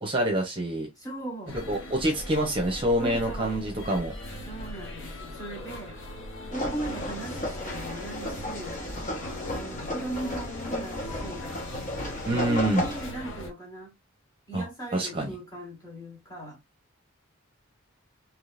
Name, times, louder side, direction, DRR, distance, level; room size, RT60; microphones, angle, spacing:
voice 1, 0.0-0.9 1.7-4.1 12.2-12.9 14.5-14.6 14.9-15.3, right 1 dB, 25° right, 0.9 m, -26 dB
voice 2, 1.0-1.6 3.0-3.6 4.5-6.0 6.5-8.8 9.5-11.5 12.4-14.0 14.5-16.6, right 2 dB, 15° left, 1.8 m, -38 dB
sound 1, 1.5-13.5, left 1 dB, 60° left, 0.8 m, -39 dB
sound 2, 6.5-13.1, left 1 dB, 40° left, 1.1 m, -34 dB
3.7 x 2.9 x 2.5 m
head